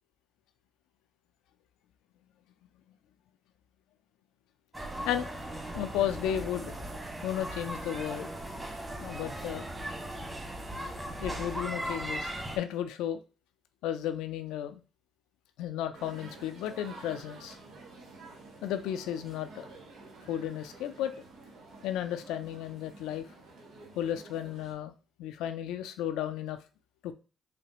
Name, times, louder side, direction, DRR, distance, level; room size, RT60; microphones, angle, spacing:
sound 1, 4.7-12.6, right 1 dB, 20° right, 1.6 m, -38 dB
voice 1, 5.7-6.7 7.2-8.3 9.0-9.7 11.2-13.2 13.8-14.8 15.6-17.6 18.6-19.7 20.3-21.1 21.8-23.3 24.0-24.9 25.2-26.6 27.0-27.1, left 10 dB, 90° left, 9 dB, 0.4 m, -34 dB
sound 2, 15.9-24.7, right 3 dB, 80° right, 1.2 m, -50 dB
4.9 x 3.4 x 2.9 m, 0.34 s
cardioid pair, 80°, 0 cm